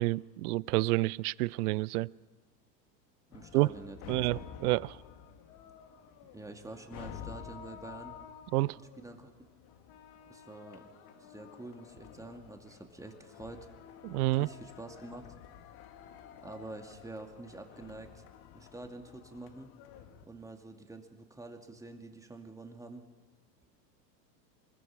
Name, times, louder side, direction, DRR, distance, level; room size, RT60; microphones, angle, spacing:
voice 1, 0.0-2.1 3.5-3.7 4.1-5.0 8.5-8.8 14.0-14.5, right 20 dB, 65° right, 23 dB, 0.6 m, -29 dB
sound 1, 3.3-20.3, left 8 dB, 50° left, 2.0 m, -51 dB
voice 2, 3.3-4.4 6.3-8.2 8.8-9.3 10.3-10.9 11.2-13.7 14.3-15.2 16.4-18.2 18.5-19.7 20.3-23.0, right 2 dB, 5° right, 5 dB, 2.3 m, -47 dB
24.5 x 21.5 x 5.8 m, 1.3 s
hypercardioid pair, 105°, 50 cm